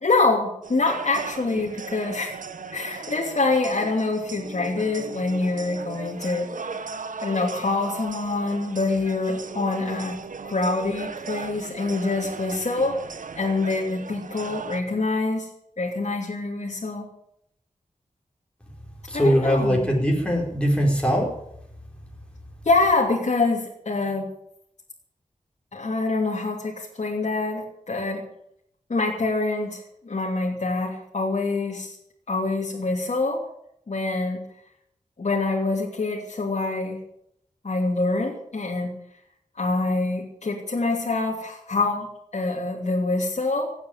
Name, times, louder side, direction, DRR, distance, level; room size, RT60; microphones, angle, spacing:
voice 1, 0.0-2.3 2.7-6.8 7.2-13.0 13.4-15.5 15.8-17.1 19.1-19.8 22.6-24.3 25.7-28.2 28.9-32.0 32.3-33.4 33.9-34.4 35.2-37.0 37.6-38.9 39.6-43.7, left 3 dB, 55° left, -2 dB, 3.0 m, -25 dB
sound 1, 0.6-14.8, right 5 dB, 75° right, 1.2 m, -37 dB
voice 2, 19.1-21.3, equal, 10° left, 0 dB, 4.7 m, -21 dB
17.0 x 8.7 x 9.2 m, 0.74 s
wide cardioid pair, 70°, 13 cm